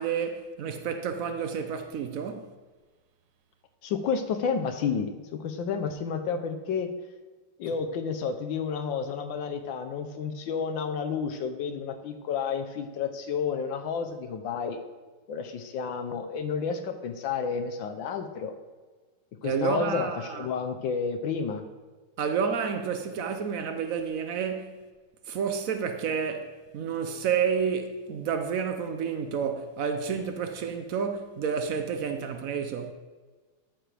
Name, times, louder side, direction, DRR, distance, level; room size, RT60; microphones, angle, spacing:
voice 1, 0.0-2.5 19.4-20.5 22.2-24.8 25.3-32.9, right 6 dB, 85° right, 0.7 m, -30 dB
voice 2, 3.8-5.1 5.4-6.9 7.6-14.8 15.3-18.5 19.4-21.7, left 6 dB, 70° left, 1.4 m, -31 dB
13.5 x 7.6 x 3.4 m
omnidirectional pair, 2.3 m